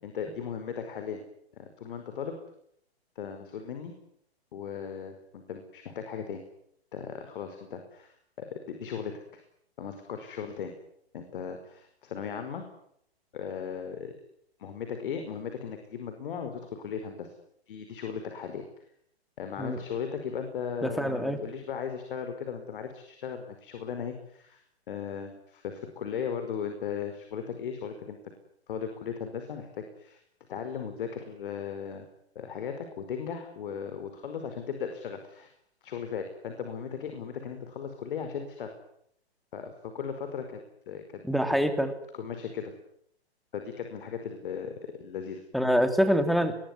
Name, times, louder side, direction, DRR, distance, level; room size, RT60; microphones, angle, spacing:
voice 1, 0.0-1.2 1.5-2.4 3.1-3.9 4.5-6.4 6.9-9.4 9.8-10.7 11.1-12.6 13.3-14.1 14.6-17.3 17.7-18.7 19.4-24.6 24.9-28.2 28.7-30.2 30.5-32.1 32.3-35.5 35.8-38.7 39.5-41.2 41.5-41.7 42.1-42.7 43.5-44.7 45.0-45.4, left 7 dB, 55° left, 7 dB, 5.1 m, -37 dB
voice 2, 20.8-21.4 41.2-41.9 45.5-46.5, equal, ahead, 9 dB, 2.6 m, -25 dB
27.0 x 22.0 x 9.9 m, 0.72 s
hypercardioid pair, 140°, 32 cm